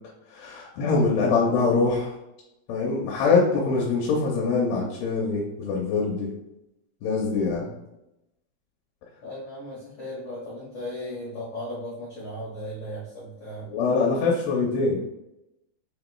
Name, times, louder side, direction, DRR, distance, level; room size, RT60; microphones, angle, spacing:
voice 1, 0.3-2.1 2.7-6.3 7.0-7.7 13.7-15.0, left 4 dB, 85° left, -2 dB, 2.7 m, -23 dB
voice 2, 7.3-7.8 9.2-13.7, left 1 dB, 70° left, -8 dB, 1.4 m, -37 dB
6.5 x 2.9 x 2.3 m, 0.89 s
omnidirectional pair, 4.8 m